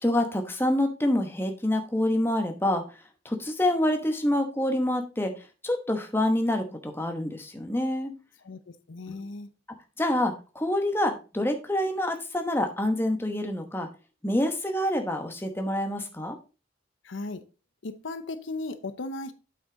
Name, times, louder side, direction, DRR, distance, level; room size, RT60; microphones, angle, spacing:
voice 1, 0.0-2.8 3.2-5.3 5.6-8.1 9.1-9.2 10.0-13.9 14.2-16.4, left 1 dB, 10° left, 1.0 m, -27 dB
voice 2, 8.4-9.5 17.0-17.4 17.8-19.3, left 2 dB, 75° left, 0.7 m, -36 dB
8.2 x 5.9 x 3.8 m
head